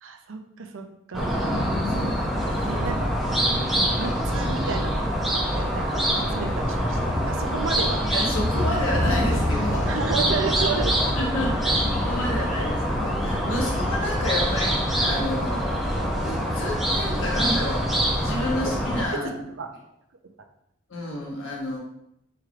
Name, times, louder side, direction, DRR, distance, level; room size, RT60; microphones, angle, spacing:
voice 1, 0.0-1.6 2.6-3.1 3.7-5.0 5.3-8.0 9.8-11.0 11.6-11.7 14.4-14.8 19.1-19.7, right 4 dB, 75° right, 5 dB, 0.5 m, -32 dB
sound 1, 1.1-19.1, equal, ahead, 0.6 m, -25 dB
sound 2, 1.4-16.2, equal, 60° left, 0.9 m, -37 dB
voice 2, 1.9-2.7 8.0-9.9 11.2-19.3 20.9-21.8, left 1 dB, 80° left, -2 dB, 1.3 m, -30 dB
4.8 x 4.5 x 2.4 m, 0.78 s
head